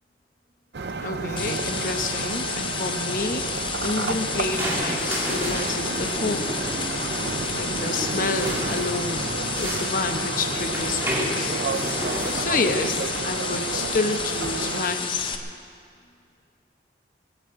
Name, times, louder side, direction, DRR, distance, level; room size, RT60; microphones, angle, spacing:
sound 1, 0.7-14.8, right 4 dB, 75° right, 0.6 m, -31 dB
voice 1, 1.0-3.5 3.8-6.5 7.5-11.6 12.3-15.4, left 3 dB, 50° left, 6 dB, 1.0 m, -29 dB
sound 2, 1.4-15.4, left 5 dB, 30° left, 0.9 m, -31 dB
sound 3, 3.7-12.8, equal, 15° right, 2.6 m, -32 dB
21.5 x 8.0 x 7.9 m, 2.3 s
head